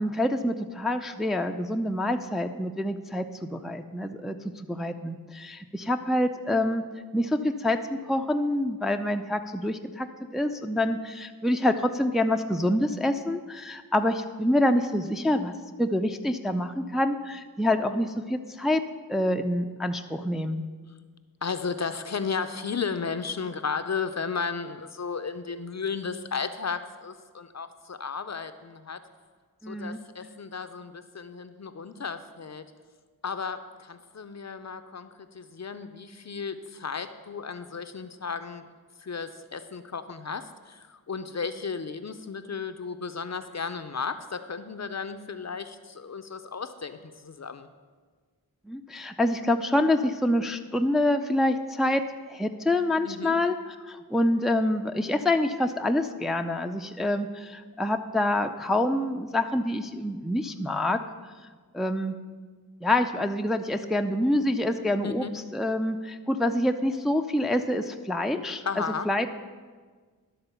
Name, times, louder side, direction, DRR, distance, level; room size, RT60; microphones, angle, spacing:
voice 1, 0.0-6.8 7.1-10.1 10.3-18.8 19.1-20.7 29.6-30.0 48.7-52.0 52.3-53.6 53.9-61.0 61.7-62.2 62.8-65.2 65.5-69.3, left 1 dB, ahead, 6 dB, 0.4 m, -26 dB
voice 2, 21.4-29.0 29.6-32.6 33.2-38.7 39.0-47.7 53.0-53.3 65.0-65.4 68.6-69.1, left 5 dB, 45° left, 9 dB, 0.5 m, -34 dB
11.5 x 3.9 x 6.8 m, 1.5 s
wide cardioid pair, 50°, 38 cm